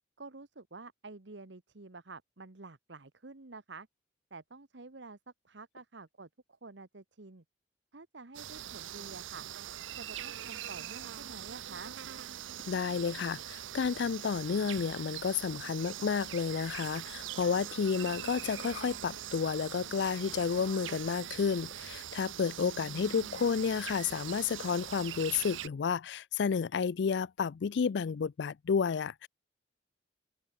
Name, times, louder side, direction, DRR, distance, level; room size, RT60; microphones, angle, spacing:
voice 1, 0.2-3.9 4.3-5.2 5.4-7.4 7.9-9.5 9.9-12.0 22.6-23.4, right 3 dB, 70° right, 1.3 m, -49 dB
sound 1, 8.3-25.7, right 11 dB, 90° right, 0.6 m, -42 dB
voice 2, 12.7-29.3, left 6 dB, 65° left, 0.4 m, -31 dB
head